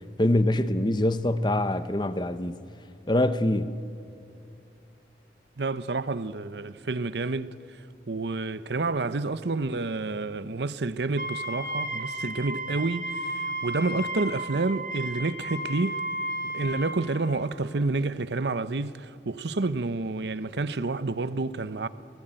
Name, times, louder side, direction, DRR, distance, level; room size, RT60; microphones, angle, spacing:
voice 1, 0.2-2.6 3.1-3.7, left 1 dB, 25° left, 0.8 m, -24 dB
voice 2, 5.6-7.5 8.1-16.0 16.4-21.9, right 3 dB, 75° right, 0.8 m, -29 dB
Wind instrument woodwind instrument, 11.2-17.1, right 1 dB, 50° right, 2.1 m, -33 dB
29.0 x 18.5 x 9.0 m
head